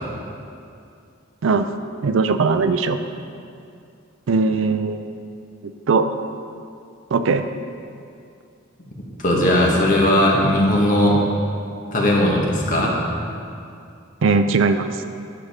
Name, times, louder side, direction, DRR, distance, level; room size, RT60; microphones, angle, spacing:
voice 1, 1.4-1.7 2.0-3.0 4.3-5.2 5.6-6.1 7.1-7.4 14.2-14.9, right 4 dB, 65° right, 9 dB, 0.4 m, -19 dB
voice 2, 9.2-11.2 11.9-12.9, left 1 dB, 40° left, -3 dB, 1.6 m, -17 dB
10.0 x 6.7 x 5.0 m, 2.5 s
head